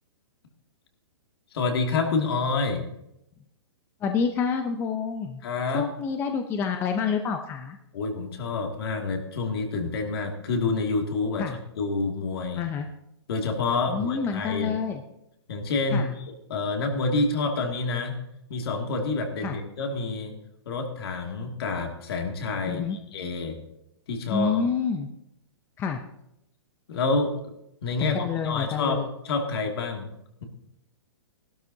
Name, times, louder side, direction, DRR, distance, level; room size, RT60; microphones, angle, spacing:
voice 1, 1.5-2.8 5.4-5.9 7.9-11.5 11.8-12.6 13.3-14.8 15.5-16.2 16.5-18.2 18.5-20.3 20.7-23.6 24.1-24.6 26.9-27.3 27.8-29.0 29.2-30.1, left 3 dB, 60° left, 3 dB, 2.3 m, -28 dB
voice 2, 4.0-5.4 5.7-7.8 11.4-11.5 12.6-12.9 13.9-15.0 15.9-16.1 19.4-19.6 22.7-23.0 24.3-25.1 25.8-26.0 28.1-29.1, left 6 dB, 15° left, 6 dB, 0.6 m, -28 dB
17.0 x 12.0 x 2.8 m, 0.82 s
hypercardioid pair, 155°, 14 cm